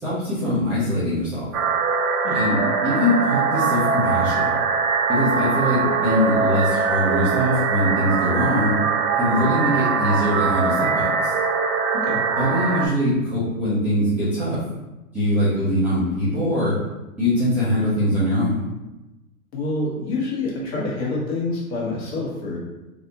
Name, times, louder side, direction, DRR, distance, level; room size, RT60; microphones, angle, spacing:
voice 1, 0.0-1.5 2.3-4.6 5.1-8.8 9.2-11.3 12.4-14.6 15.1-16.8 17.2-18.6, equal, 5° right, -15 dB, 0.4 m, -22 dB
sound 1, 1.5-12.9, right 5 dB, 75° right, 0.6 m, -22 dB
voice 2, 19.5-22.6, left 2 dB, 45° left, -5 dB, 1.5 m, -27 dB
3.1 x 2.6 x 2.9 m, 1.0 s
hypercardioid pair, 125°, 43 cm